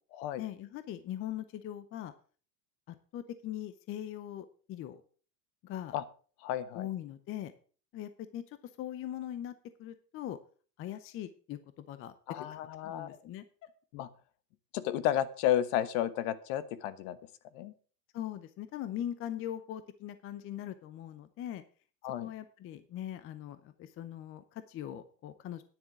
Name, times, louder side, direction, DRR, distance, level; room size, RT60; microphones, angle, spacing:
voice 1, 0.4-2.1 2.9-5.0 5.6-5.9 6.7-7.5 7.9-8.4 8.8-9.5 9.8-10.4 10.8-12.5 12.8-13.4 18.1-21.6 22.2-25.6, left 11 dB, 25° left, 12 dB, 0.6 m, -41 dB
voice 2, 6.4-6.9 12.3-13.2 13.9-14.1 14.7-17.2 17.5-17.7 22.0-22.3, left 11 dB, 55° left, 15 dB, 1.2 m, -32 dB
10.0 x 7.2 x 6.0 m, 0.40 s
supercardioid pair, 140°, 50 cm